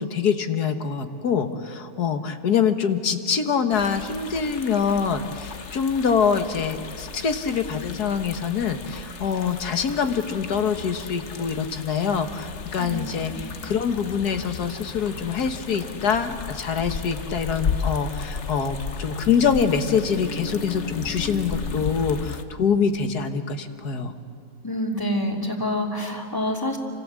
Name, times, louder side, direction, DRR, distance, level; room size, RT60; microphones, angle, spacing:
voice 1, 0.0-24.2, left 6 dB, 90° left, 7 dB, 2.0 m, -25 dB
sound 1, 3.7-22.4, left 5 dB, 50° left, 1.4 m, -34 dB
voice 2, 24.6-26.8, left 1 dB, 15° left, 1 dB, 3.0 m, -27 dB
29.5 x 26.0 x 7.6 m, 2.6 s
omnidirectional pair, 1.6 m